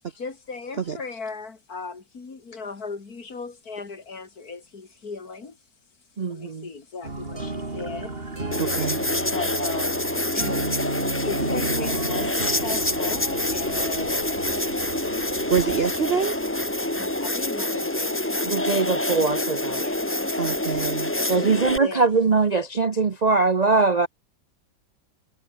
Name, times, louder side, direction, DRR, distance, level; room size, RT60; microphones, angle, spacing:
voice 1, 0.2-5.6 6.3-8.6 9.3-15.5 17.0-18.6 19.7-20.3 21.2-22.1, left 4 dB, 50° left, 3.2 m, -37 dB
voice 2, 6.2-6.7 18.4-19.8 21.3-24.1, right 4 dB, 65° right, 0.4 m, -22 dB
sound 1, 7.0-17.2, right 2 dB, 30° right, 3.3 m, -34 dB
sound 2, 8.5-21.8, left 1 dB, 10° left, 1.2 m, -26 dB
voice 3, 8.6-9.0 15.5-16.4 20.4-21.1, right 7 dB, 50° right, 0.7 m, -25 dB
omnidirectional pair, 2.0 m